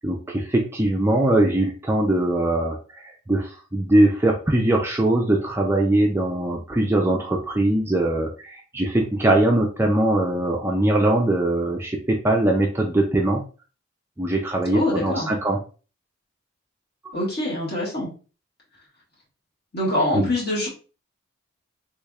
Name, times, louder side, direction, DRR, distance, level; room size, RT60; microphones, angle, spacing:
voice 1, 0.0-13.4 14.2-15.6 20.1-20.3, right 1 dB, 10° right, 0 dB, 0.3 m, -21 dB
voice 2, 14.7-15.4 17.1-18.1 19.7-20.7, left 1 dB, 50° left, -5 dB, 1.6 m, -24 dB
3.4 x 3.3 x 2.3 m, 0.36 s
head